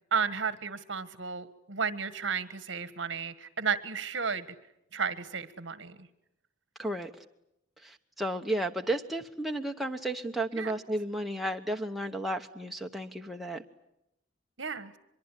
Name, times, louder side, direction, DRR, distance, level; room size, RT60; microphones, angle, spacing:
voice 1, 0.1-4.5 4.9-6.0 10.6-10.7 14.6-14.9, right 6 dB, 60° right, 14 dB, 1.5 m, -33 dB
voice 2, 6.8-7.1 7.8-13.6, right 1 dB, ahead, 2 dB, 1.0 m, -33 dB
24.0 x 23.0 x 10.0 m, 0.81 s
head